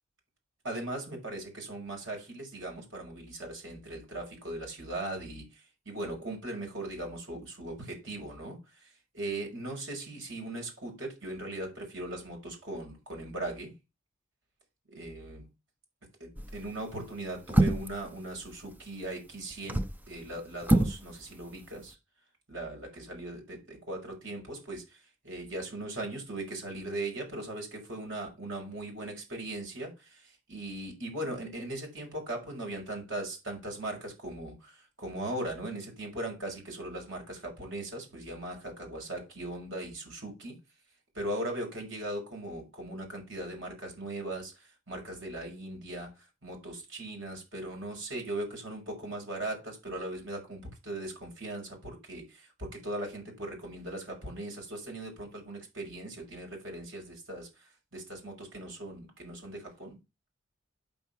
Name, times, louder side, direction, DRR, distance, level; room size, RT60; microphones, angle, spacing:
voice 1, 0.6-13.7 14.9-15.5 16.2-22.0 22.5-40.6 41.1-60.0, right 1 dB, 65° right, 6.0 m, -39 dB
sound 1, 16.4-16.7 17.5-18.0 19.5-20.0 20.6-21.0 21.3-21.4, right 1 dB, 10° right, 0.6 m, -25 dB
9.2 x 5.8 x 5.8 m
head